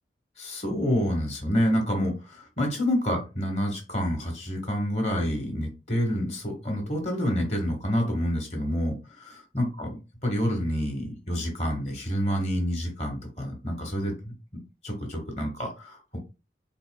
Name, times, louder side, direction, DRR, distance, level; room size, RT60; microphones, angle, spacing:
voice 1, 0.4-10.0 10.2-14.3 14.8-16.2, equal, 40° left, 2 dB, 1.4 m, -28 dB
4.1 x 4.0 x 2.2 m, 0.30 s
head